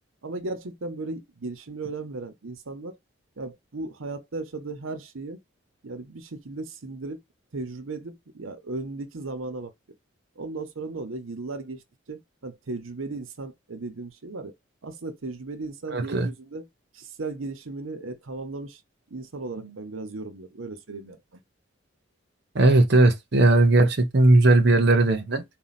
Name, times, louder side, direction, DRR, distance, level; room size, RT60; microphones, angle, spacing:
voice 1, 0.2-3.0 3.4-5.4 5.8-7.2 7.5-9.7 10.4-11.8 12.1-14.5 14.8-16.7 16.9-18.8 19.1-21.4, right 3 dB, 90° right, 0.8 m, -36 dB
voice 2, 15.9-16.3 22.5-25.4, right 2 dB, 55° right, 0.8 m, -18 dB
4.3 x 2.3 x 4.0 m
head